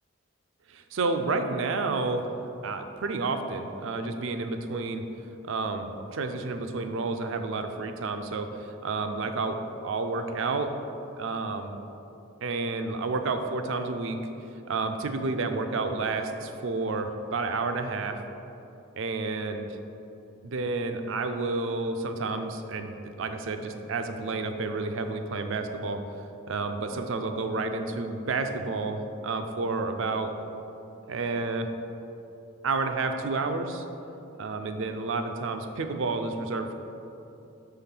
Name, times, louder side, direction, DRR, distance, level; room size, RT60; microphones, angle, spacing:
voice 1, 0.7-2.3 2.6-5.0 5.4-10.8 11.2-11.8 12.4-14.2 14.7-18.2 19.0-19.7 20.4-26.0 26.5-30.3 31.1-31.7 32.6-33.8 34.4-36.8, right 3 dB, 65° right, 7 dB, 0.4 m, -30 dB
5.6 x 3.5 x 5.9 m, 2.9 s
head